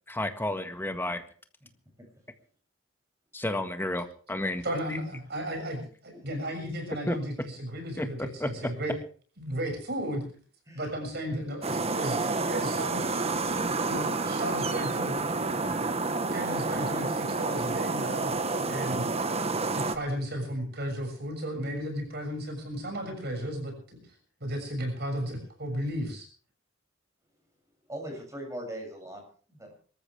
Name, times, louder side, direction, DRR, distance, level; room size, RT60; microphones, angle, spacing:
voice 1, 0.1-1.2 3.3-4.6 4.9-5.0 7.1-7.2 8.0-8.1 8.4-8.5, left 1 dB, 10° left, 7 dB, 1.7 m, -31 dB
voice 2, 4.6-8.9 9.4-10.2 10.7-13.0 13.9-15.3 16.3-18.3 18.6-19.1 19.7-24.0 24.4-26.3, equal, 55° right, 3 dB, 6.8 m, -34 dB
sound 1, 11.6-20.0, right 3 dB, 30° right, 1.3 m, -29 dB
voice 3, 27.9-29.7, right 1 dB, 15° right, 3 dB, 7.3 m, -40 dB
25.0 x 14.0 x 3.5 m, 0.42 s
head